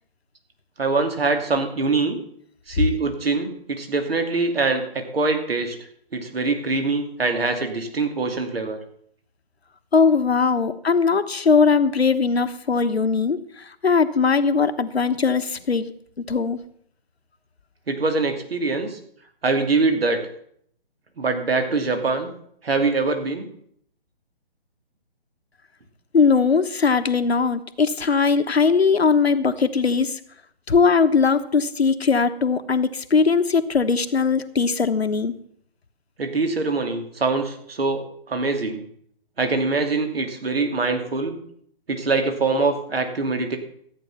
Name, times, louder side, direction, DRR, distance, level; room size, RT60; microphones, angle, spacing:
voice 1, 0.8-2.2 2.7-5.8 6.1-8.8 17.9-19.0 19.4-20.2 21.2-22.3 22.6-23.5 36.2-38.8 39.4-41.4 41.9-43.6, right 3 dB, 70° right, 6 dB, 2.7 m, -23 dB
voice 2, 9.9-15.9 16.2-16.6 26.1-30.2 30.7-35.3, left 5 dB, 80° left, 9 dB, 1.2 m, -20 dB
14.0 x 8.6 x 5.8 m, 0.65 s
figure-of-eight pair, 145°, 31 cm